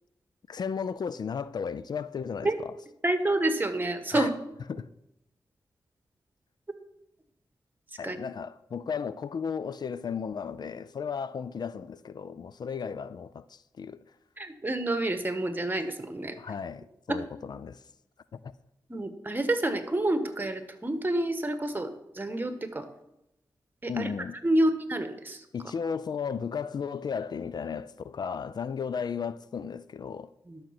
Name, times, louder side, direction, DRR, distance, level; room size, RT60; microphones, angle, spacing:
voice 1, 0.5-2.7 4.1-4.3 4.7-4.9 8.0-14.0 16.4-17.8 18.3-18.5 23.9-24.3 25.5-30.3, left 6 dB, 60° left, 0.4 m, -35 dB
voice 2, 3.0-4.4 8.0-8.2 14.4-16.4 17.1-17.2 18.9-22.9 23.8-24.1 24.4-25.4 30.5-30.6, right 1 dB, 25° right, 1.4 m, -28 dB
12.0 x 6.6 x 5.9 m
cardioid pair, 55°, 8 cm